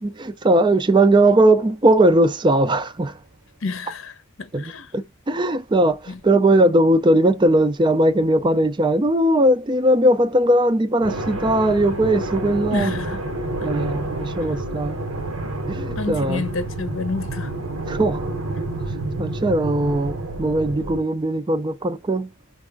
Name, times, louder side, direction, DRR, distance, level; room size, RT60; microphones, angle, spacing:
voice 1, 0.0-3.1 4.5-12.9 13.6-15.0 15.7-16.5 17.9-18.3 19.2-22.3, right 1 dB, 20° right, 0.4 m, -19 dB
voice 2, 3.6-4.9 6.1-6.2 12.7-13.2 13.6-13.7 16.0-17.5, left 3 dB, 65° left, 0.7 m, -29 dB
sound 1, 11.0-21.0, right 2 dB, 85° right, 1.2 m, -29 dB
4.8 x 2.4 x 3.5 m
head